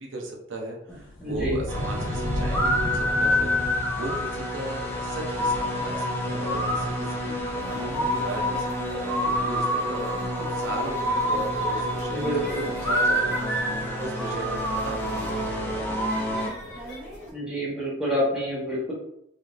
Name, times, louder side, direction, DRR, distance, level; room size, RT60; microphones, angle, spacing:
voice 1, 0.0-16.9, right 1 dB, 70° right, 0 dB, 0.6 m, -37 dB
sound 1, 0.9-13.9, left 1 dB, 70° left, 0.6 m, -37 dB
voice 2, 1.2-1.6 12.1-12.7 17.3-18.9, equal, 5° right, -8 dB, 1.0 m, -28 dB
sound 2, 1.7-16.5, equal, 10° left, 0.5 m, -27 dB
sound 3, 7.4-17.3, equal, 55° left, 1.1 m, -40 dB
3.5 x 2.7 x 2.4 m, 0.76 s
head